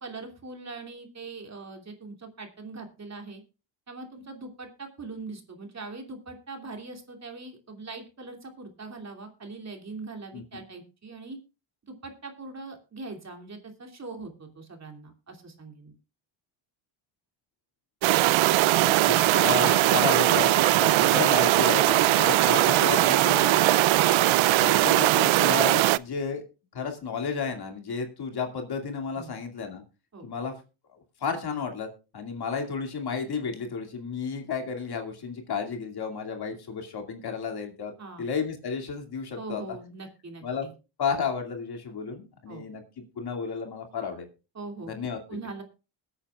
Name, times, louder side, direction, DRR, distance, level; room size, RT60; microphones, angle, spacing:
voice 1, 0.0-3.4 3.9-11.4 11.9-16.0 29.1-29.3 30.1-30.3 38.0-38.2 39.4-40.7 42.5-42.7 44.5-44.9 45.3-45.6, right 3 dB, 30° right, 4 dB, 2.7 m, -41 dB
sound 1, 18.0-26.0, right 17 dB, 70° right, 0.6 m, -20 dB
voice 2, 18.7-20.5 20.8-23.6 24.6-26.4 26.7-29.8 30.2-30.5 31.2-37.9 38.2-39.6 40.4-40.7 41.0-44.3 44.8-45.2, left 5 dB, 50° left, 4 dB, 2.5 m, -32 dB
Trumpet, 19.1-24.4, left 2 dB, 10° left, 0.6 m, -37 dB
21.5 x 8.9 x 2.4 m, 0.31 s
cardioid pair, 105°, 49 cm